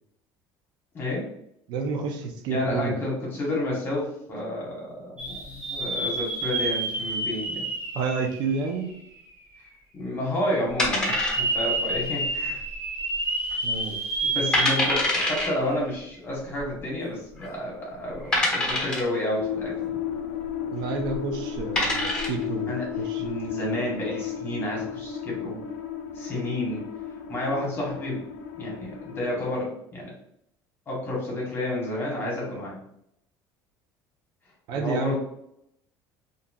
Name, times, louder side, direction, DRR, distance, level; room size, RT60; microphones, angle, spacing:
voice 1, 0.9-1.3 2.5-7.6 9.9-12.6 14.2-20.0 22.7-25.6 26.1-26.8 27.3-28.2 28.5-30.1 30.9-32.8 34.7-35.2, left 1 dB, 25° left, -3 dB, 1.2 m, -30 dB
voice 2, 1.7-3.0 7.9-8.9 13.6-14.0 20.7-22.7 23.0-23.2 34.7-35.2, right 4 dB, 60° right, 4 dB, 0.5 m, -29 dB
sound 1, 5.2-9.1 9.7-9.8 10.8-15.8 16.1-16.2 18.2-18.4, right 2 dB, 20° right, 1.2 m, -29 dB
sound 2, 10.8-11.8 12.0-12.1 12.7-13.1 13.5-13.6 14.2-14.3 14.5-15.5 16.6-16.7 17.4-17.5 18.3-19.2 21.0-21.2 21.6-22.4, left 2 dB, 10° left, 1.1 m, -25 dB
sound 3, 19.4-29.5, left 9 dB, 80° left, 0.4 m, -34 dB
2.8 x 2.6 x 2.5 m, 0.76 s
cardioid pair, 140°, 8 cm